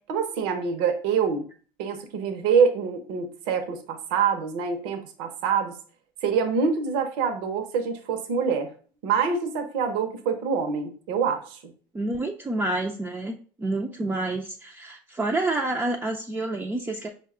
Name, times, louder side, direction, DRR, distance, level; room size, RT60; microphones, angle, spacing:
voice 1, 0.1-1.4 1.8-5.7 6.2-8.7 9.0-11.6, right 6 dB, 75° right, 6 dB, 0.7 m, -25 dB
voice 2, 11.9-17.1, right 2 dB, 15° right, 1 dB, 0.4 m, -28 dB
5.2 x 2.2 x 3.6 m, 0.43 s
supercardioid pair, 90°, 11 cm